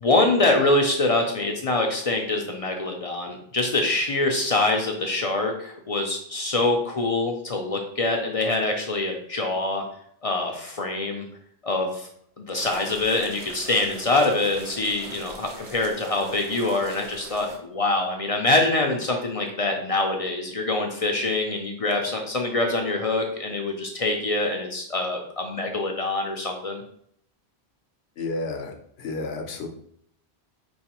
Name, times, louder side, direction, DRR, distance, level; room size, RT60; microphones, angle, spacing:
voice 1, 0.0-9.8 10.2-11.2 11.6-12.1 12.4-26.8, left 2 dB, 50° left, 2 dB, 0.5 m, -24 dB
sound 1, 12.5-17.6, right 2 dB, 40° right, 0.7 m, -42 dB
voice 2, 28.2-29.7, left 3 dB, 80° left, 4 dB, 0.9 m, -31 dB
4.5 x 3.1 x 2.9 m, 0.67 s
omnidirectional pair, 1.1 m